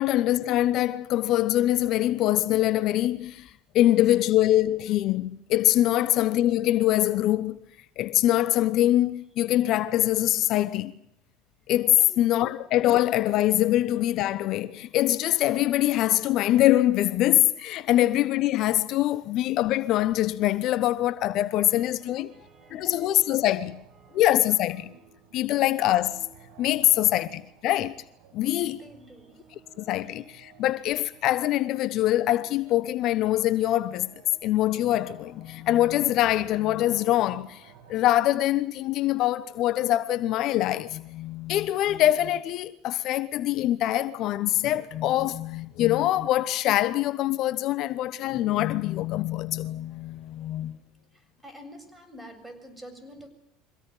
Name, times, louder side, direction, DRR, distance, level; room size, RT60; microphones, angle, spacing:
voice 1, 0.0-7.6 8.0-10.9 11.7-22.3 22.7-23.8 24.1-24.9 25.3-26.3 26.6-28.0 28.3-28.8 29.8-34.1 34.4-50.8, left 14 dB, 55° left, 1.0 m, -24 dB
sound 1, 20.2-38.2, right 6 dB, 65° right, 5.5 m, -54 dB
voice 2, 21.5-23.7 24.0-24.2 24.9-25.3 28.4-29.5 30.0-30.2 51.1-53.3, equal, 10° right, 7.3 m, -49 dB
24.5 x 17.5 x 9.2 m
hypercardioid pair, 80°, 0 cm